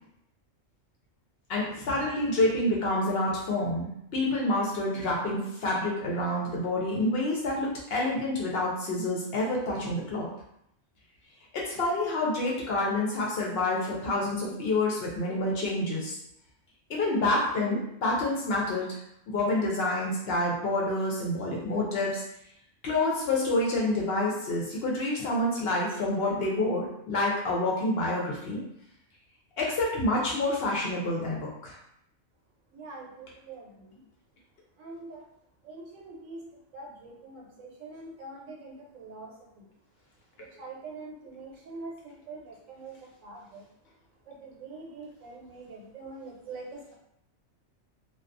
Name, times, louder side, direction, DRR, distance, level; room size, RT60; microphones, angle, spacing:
voice 1, 1.5-10.3 11.5-16.2 16.9-19.0 19.3-22.2 22.8-28.6 29.6-31.7, left 2 dB, 60° left, -3 dB, 0.7 m, -28 dB
voice 2, 32.7-34.0 34.8-35.2 35.6-39.7 40.3-43.7 44.2-46.9, right 3 dB, 85° right, -1 dB, 1.0 m, -44 dB
2.3 x 2.2 x 2.4 m, 0.76 s
omnidirectional pair, 1.3 m